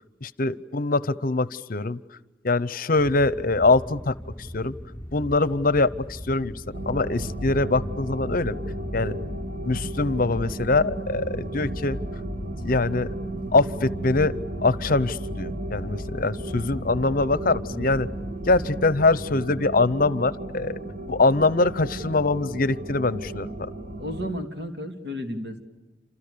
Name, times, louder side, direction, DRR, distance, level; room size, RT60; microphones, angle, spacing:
voice 1, 0.2-2.0 2.4-4.1 4.5-4.7 5.1-6.5 6.9-8.6 8.9-9.2 9.6-12.0 12.6-13.1 13.5-14.3 14.6-18.1 18.5-20.8 21.1-23.5, left 3 dB, 50° left, 17 dB, 0.8 m, -23 dB
sound 1, 3.0-18.7, equal, 10° left, 6.4 m, -40 dB
sound 2, 6.7-24.3, right 1 dB, 50° right, 1.9 m, -34 dB
voice 2, 17.7-18.0 24.0-25.6, equal, 70° right, 4 dB, 3.2 m, -33 dB
29.0 x 27.0 x 6.9 m, 1.1 s
head